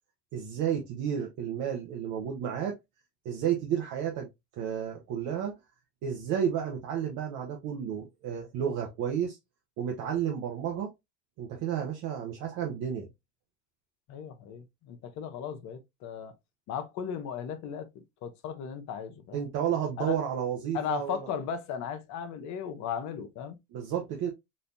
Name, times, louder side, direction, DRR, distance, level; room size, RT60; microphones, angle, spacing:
voice 1, 0.3-2.8 3.2-4.3 4.6-5.5 6.0-9.4 9.8-10.9 11.4-13.1 19.3-21.3 23.7-24.3, right 9 dB, 55° right, 1.0 m, -31 dB
voice 2, 14.1-16.3 16.7-17.9 18.2-19.5 20.0-20.2 20.7-23.6, left 8 dB, 50° left, 0.8 m, -36 dB
4.1 x 2.6 x 2.5 m
hypercardioid pair, 95°, 35 cm